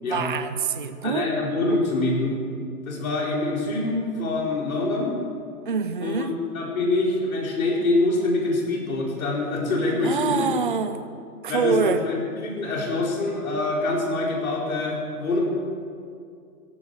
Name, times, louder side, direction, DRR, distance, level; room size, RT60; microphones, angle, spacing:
voice 1, 0.1-1.3 1.7-1.8 5.7-6.3 10.0-11.0 11.4-12.0, right 5 dB, 35° right, 10 dB, 0.4 m, -25 dB
voice 2, 1.0-2.4 2.9-5.2 6.0-10.5 11.5-15.4, left 2 dB, 60° left, -2 dB, 4.7 m, -25 dB
16.0 x 9.6 x 8.0 m, 2.3 s
hypercardioid pair, 170°, 46 cm